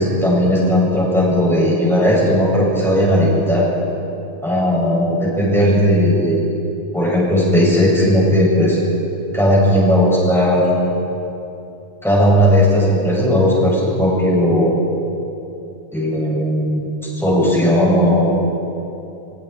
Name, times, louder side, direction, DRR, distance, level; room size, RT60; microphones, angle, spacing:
voice 1, 0.0-3.6 4.4-6.4 6.9-8.8 9.3-10.7 12.0-14.7 15.9-16.9 17.2-18.3, equal, ahead, -6 dB, 6.7 m, -16 dB
28.0 x 23.5 x 4.5 m, 2.8 s
omnidirectional pair, 1.5 m